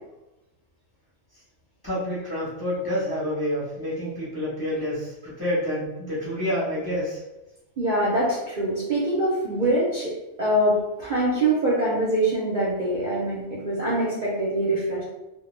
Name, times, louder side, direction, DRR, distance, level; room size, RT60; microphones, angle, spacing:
voice 1, 1.8-7.2, equal, 25° left, -9 dB, 0.7 m, -28 dB
voice 2, 7.8-10.1 10.4-15.0, right 1 dB, 50° right, -7 dB, 0.6 m, -24 dB
2.2 x 2.1 x 3.1 m, 1.0 s
omnidirectional pair, 1.3 m